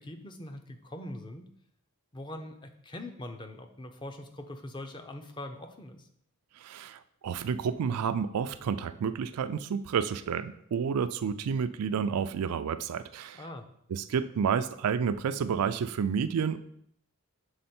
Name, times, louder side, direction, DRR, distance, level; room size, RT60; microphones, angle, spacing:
voice 1, 0.0-1.5 2.1-6.1 13.3-13.7, left 1 dB, 20° left, 6 dB, 0.5 m, -42 dB
voice 2, 6.6-13.4 13.9-16.6, right 7 dB, 85° right, 12 dB, 0.4 m, -30 dB
6.5 x 3.8 x 4.3 m, 0.70 s
head